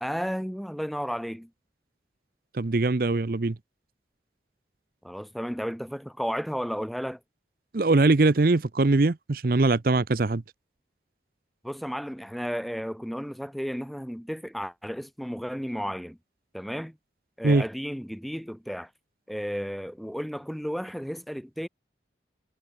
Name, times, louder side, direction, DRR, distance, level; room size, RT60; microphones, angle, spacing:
voice 1, 0.0-1.5 5.0-7.2 11.6-16.2 16.5-17.0 17.4-18.9 19.3-21.7, equal, ahead, 0.8 m, -33 dB
voice 2, 2.5-3.6 7.7-10.4 17.4-17.6, right 3 dB, 50° right, 0.6 m, -22 dB
head